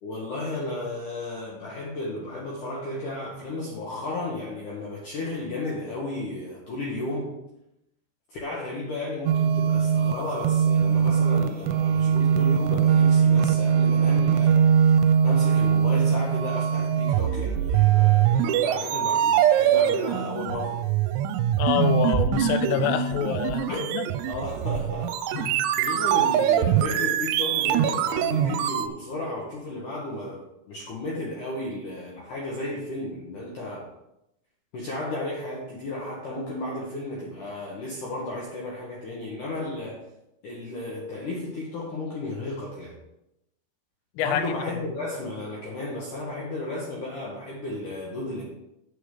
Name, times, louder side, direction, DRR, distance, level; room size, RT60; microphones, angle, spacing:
voice 1, 0.0-7.3 8.3-14.6 15.2-20.8 23.7-23.8 24.2-25.4 25.8-33.9 34.7-40.0 40.4-43.0 44.2-48.4, left 2 dB, 65° left, -4 dB, 2.1 m, -34 dB
sound 1, 9.3-28.9, right 8 dB, 80° right, 2.8 m, -22 dB
voice 2, 21.6-24.1 25.3-25.7 44.2-44.5, left 9 dB, 90° left, 10 dB, 3.3 m, -26 dB
9.1 x 5.0 x 6.5 m, 0.87 s
omnidirectional pair, 5.5 m